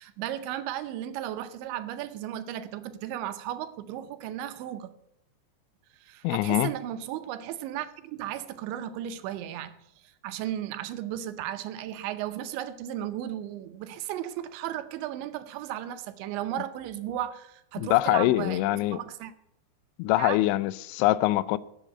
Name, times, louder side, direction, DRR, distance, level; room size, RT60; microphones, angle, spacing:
voice 1, 0.0-4.9 5.9-19.3 20.2-20.4, right 12 dB, 80° right, 3.0 m, -35 dB
voice 2, 6.2-6.7 17.8-19.0 20.0-21.6, left 16 dB, 85° left, 2.9 m, -24 dB
10.5 x 7.9 x 9.6 m
omnidirectional pair, 5.4 m